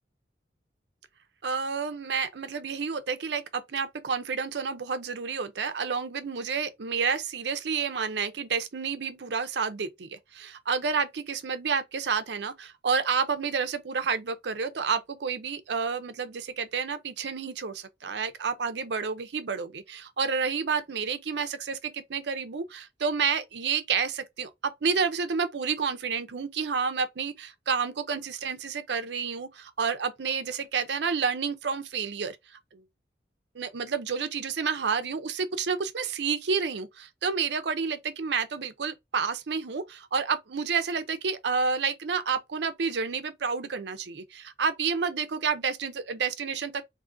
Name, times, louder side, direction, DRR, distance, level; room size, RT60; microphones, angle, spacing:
voice 1, 1.4-32.4 32.7-32.8 33.5-46.8, right 5 dB, 70° right, 0.6 m, -30 dB
3.7 x 2.7 x 2.6 m
head